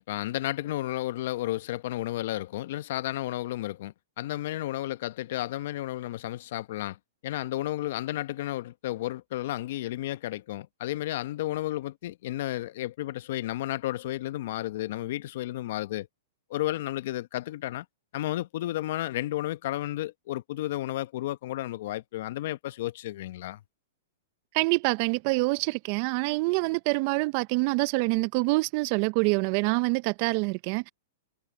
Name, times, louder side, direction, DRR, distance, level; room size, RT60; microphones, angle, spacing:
voice 1, 0.0-16.1 16.5-17.8 18.1-23.6, left 15 dB, 60° left, 0.9 m, -32 dB
voice 2, 24.5-30.9, right 27 dB, 45° right, 0.6 m, -26 dB
hypercardioid pair, 130°, 0 cm